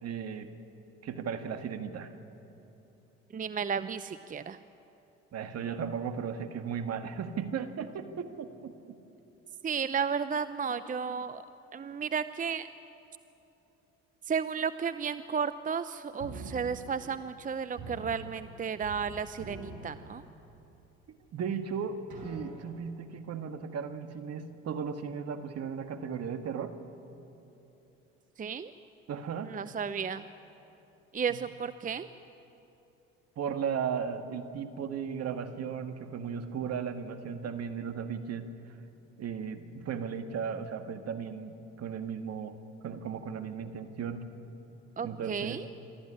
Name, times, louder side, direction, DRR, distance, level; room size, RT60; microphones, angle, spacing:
voice 1, 0.0-0.5 1.0-2.1 5.3-9.0 21.1-26.7 29.1-29.7 31.3-31.4 33.4-38.5 39.2-42.6 42.8-44.3 45.0-45.6, right 7 dB, 55° right, 7 dB, 1.8 m, -36 dB
voice 2, 3.3-4.6 9.6-11.4 11.7-12.7 14.3-20.2 28.4-28.7 29.5-30.2 31.1-32.1 45.0-45.7, right 6 dB, 25° right, 12 dB, 0.7 m, -33 dB
sound 1, 16.2-17.4 17.8-19.1 19.3-20.6 21.2-21.3 22.1-22.9, right 2 dB, 85° right, 4.4 m, -45 dB
26.0 x 13.5 x 9.9 m, 3.0 s
hypercardioid pair, 60°, 30 cm